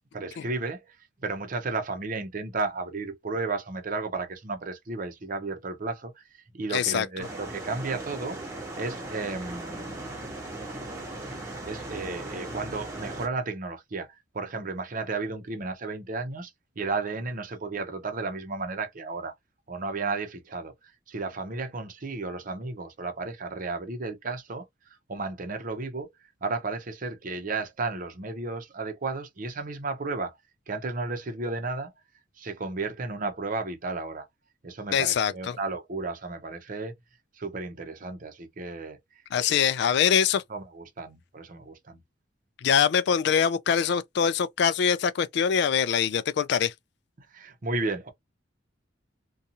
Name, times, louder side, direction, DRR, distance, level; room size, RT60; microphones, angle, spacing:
voice 1, 0.1-1.0 1.2-6.2 6.5-8.4 8.8-10.4 11.3-19.3 19.7-24.7 25.1-26.1 26.4-30.4 30.7-31.9 32.4-34.3 34.6-36.9 37.3-39.0 39.5-39.7 40.5-42.0 47.2-48.1, right 3 dB, 45° right, 0.7 m, -33 dB
voice 2, 6.7-7.1 34.9-35.6 39.3-40.4 42.6-46.7, left 7 dB, 60° left, 0.3 m, -23 dB
sound 1, 7.2-13.3, right 2 dB, 15° right, 0.9 m, -38 dB
2.6 x 2.3 x 2.7 m
head